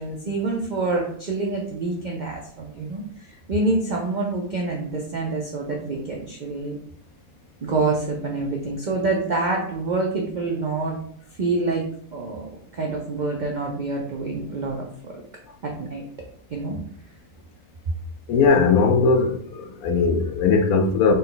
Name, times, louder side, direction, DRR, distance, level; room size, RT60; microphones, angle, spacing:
voice 1, 0.0-6.8 7.6-11.0 11.4-15.2 15.6-16.0 16.5-16.8, right 3 dB, 70° right, 0.4 m, -27 dB
voice 2, 18.3-21.1, left 4 dB, 85° left, 1.1 m, -19 dB
4.0 x 2.2 x 3.8 m
omnidirectional pair, 1.5 m